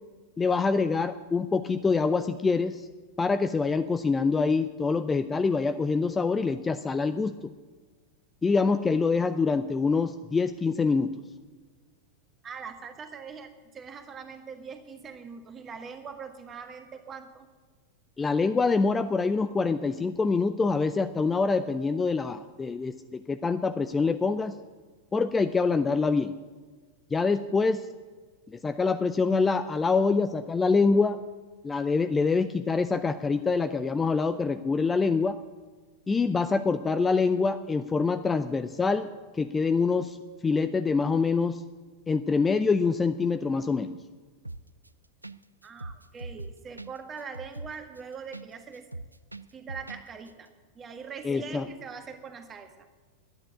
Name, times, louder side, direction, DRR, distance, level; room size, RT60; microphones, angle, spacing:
voice 1, 0.4-2.9 3.2-7.5 8.4-11.1 18.2-24.5 25.1-26.3 27.1-27.8 28.5-31.2 31.6-35.4 36.1-39.1 39.4-40.2 40.4-41.6 42.1-43.9 51.2-51.6, left 4 dB, 15° left, 10 dB, 0.5 m, -25 dB
voice 2, 12.4-17.5 45.6-48.9 49.5-50.5 50.7-52.7, right 6 dB, 25° right, 7 dB, 1.6 m, -42 dB
sound 1, 44.4-44.9 45.2-45.4 45.6-48.5 48.7-50.0 50.3-50.4, right 2 dB, 85° right, 0.3 m, -40 dB
11.0 x 9.7 x 8.4 m, 1.4 s
figure-of-eight pair, 90°, 0 cm